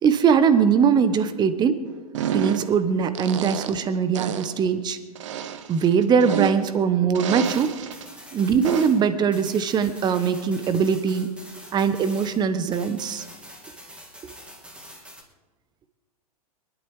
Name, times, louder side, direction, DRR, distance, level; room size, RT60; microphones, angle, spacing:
voice 1, 0.0-1.7 2.3-5.0 5.7-7.7 8.3-11.3 11.7-13.2, right 6 dB, 20° right, 12 dB, 1.2 m, -21 dB
sound 1, 2.1-2.8 3.1-3.9 4.1-4.6 5.1-6.8 7.1-8.0 8.6-9.1, right 9 dB, 50° right, 1.0 m, -30 dB
sound 2, 7.4-12.5 12.7-15.2, equal, 5° right, 2.8 m, -45 dB
24.0 x 11.5 x 3.6 m, 1.3 s
figure-of-eight pair, 100°, 19 cm